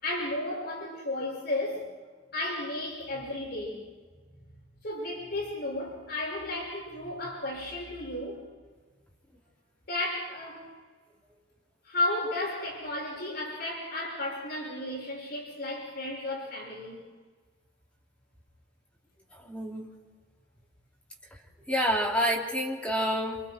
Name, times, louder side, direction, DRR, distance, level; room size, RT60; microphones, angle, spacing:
voice 1, 0.0-1.9 2.3-3.9 4.3-4.4 4.8-8.4 9.9-10.7 11.8-17.0, left 1 dB, 60° left, 6.3 m, -33 dB
voice 2, 19.3-19.9 21.7-23.4, equal, 5° left, 3.8 m, -28 dB
29.0 x 27.5 x 4.7 m
head